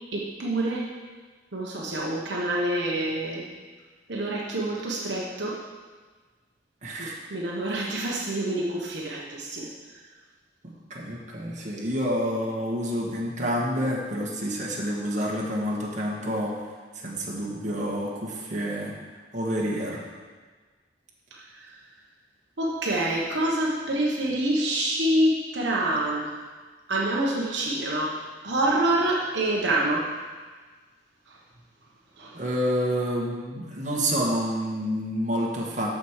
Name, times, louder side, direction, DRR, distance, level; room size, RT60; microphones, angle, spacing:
voice 1, 0.1-0.9 1.5-3.5 4.1-5.6 7.0-10.0 21.3-21.7 22.6-26.3 26.9-30.1 31.3-31.4 32.2-32.4, right 1 dB, 75° right, -3 dB, 1.3 m, -27 dB
voice 2, 6.8-7.2 7.8-7.9 10.6-16.6 17.0-18.9 19.3-20.0 32.3-35.9, equal, 45° right, -3 dB, 1.8 m, -28 dB
13.5 x 5.2 x 4.9 m, 1.4 s
head